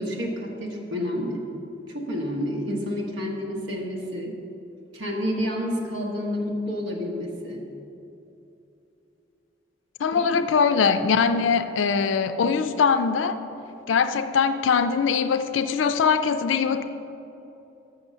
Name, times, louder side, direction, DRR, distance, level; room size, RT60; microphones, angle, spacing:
voice 1, 0.0-1.5 1.9-4.3 4.9-7.6 10.1-10.4, equal, 75° right, -1 dB, 1.1 m, -29 dB
voice 2, 10.0-13.4 13.9-16.9, left 5 dB, 80° left, 11 dB, 0.4 m, -22 dB
6.5 x 6.2 x 6.2 m, 2.8 s
head